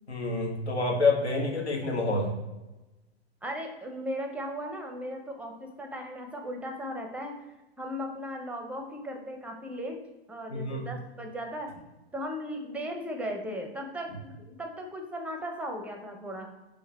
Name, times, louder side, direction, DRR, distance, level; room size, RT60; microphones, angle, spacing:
voice 1, 0.1-2.3 10.5-10.9, left 3 dB, 85° left, 1 dB, 1.2 m, -27 dB
voice 2, 3.4-7.4 7.8-10.0 10.3-11.7 12.1-16.5, equal, 5° right, 4 dB, 0.5 m, -37 dB
3.9 x 3.3 x 4.0 m, 1.0 s
figure-of-eight pair, 100°, 32 cm